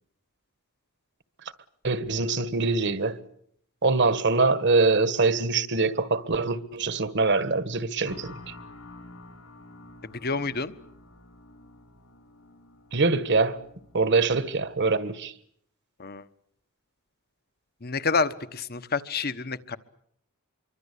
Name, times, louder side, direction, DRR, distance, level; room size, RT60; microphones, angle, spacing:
voice 1, 1.8-3.2 3.8-8.5 12.9-13.6 13.9-15.3, right 3 dB, 55° right, 1.6 m, -24 dB
sound 1, 8.0-14.9, left 2 dB, 70° left, 4.3 m, -49 dB
voice 2, 10.2-10.7 16.0-16.2 17.8-19.8, left 4 dB, 45° left, 1.2 m, -28 dB
26.0 x 24.0 x 8.5 m
head